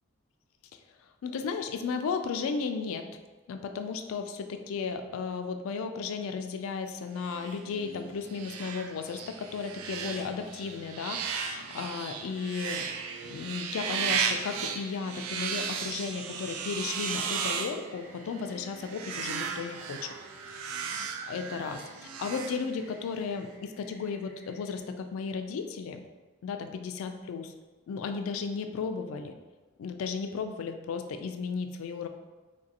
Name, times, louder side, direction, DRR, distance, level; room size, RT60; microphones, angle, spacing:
voice 1, 1.2-3.1 3.5-12.9 13.2-20.1 20.4-26.0 26.4-27.5 27.9-29.3 29.8-32.1, left 5 dB, 80° left, 7 dB, 0.3 m, -35 dB
sound 1, 7.2-23.1, right 6 dB, 90° right, 0.3 m, -36 dB
sound 2, 12.9-24.8, left 1 dB, ahead, 0.6 m, -58 dB
3.7 x 2.5 x 2.7 m, 1.2 s
head